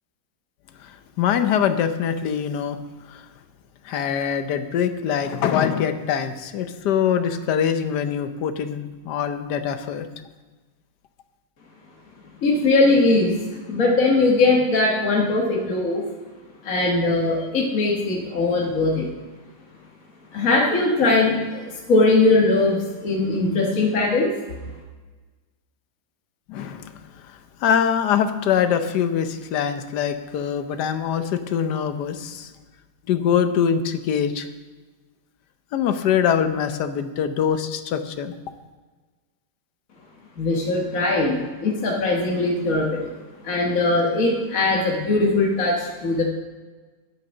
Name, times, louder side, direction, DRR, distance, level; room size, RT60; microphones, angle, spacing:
voice 1, 0.8-2.8 3.1-3.2 3.8-10.1 26.5-26.9 27.2-27.3 27.6-32.5 33.1-34.5 35.7-38.3, left 8 dB, 65° left, 10 dB, 1.1 m, -23 dB
voice 2, 12.4-13.4 13.7-16.0 16.6-19.1 20.3-24.3 40.4-43.1 43.4-46.2, left 2 dB, 45° left, -2 dB, 1.6 m, -20 dB
8.9 x 6.3 x 7.6 m, 1.3 s
omnidirectional pair, 2.2 m